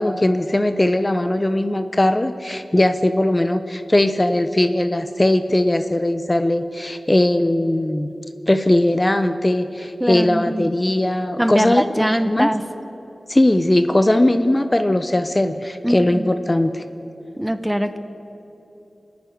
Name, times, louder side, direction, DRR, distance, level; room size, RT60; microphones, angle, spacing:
voice 1, 0.0-8.1 8.5-12.5 13.3-16.8, left 1 dB, 25° left, 9 dB, 0.9 m, -19 dB
voice 2, 10.0-10.7 11.4-12.6 15.8-16.3 17.4-18.0, equal, 5° right, 10 dB, 1.0 m, -22 dB
28.5 x 10.5 x 9.4 m, 3.0 s
wide cardioid pair, 60°, 0 cm